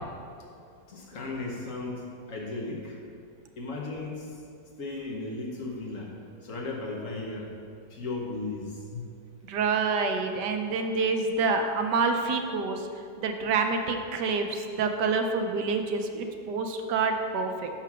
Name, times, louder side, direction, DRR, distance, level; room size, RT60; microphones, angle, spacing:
voice 1, 0.5-3.0 3.6-4.3 4.8-9.0, left 2 dB, 55° left, -1 dB, 1.2 m, -36 dB
voice 2, 9.5-12.9 13.2-17.7, right 4 dB, 75° right, 5 dB, 1.2 m, -27 dB
5.9 x 5.8 x 5.9 m, 2.5 s
omnidirectional pair, 1.9 m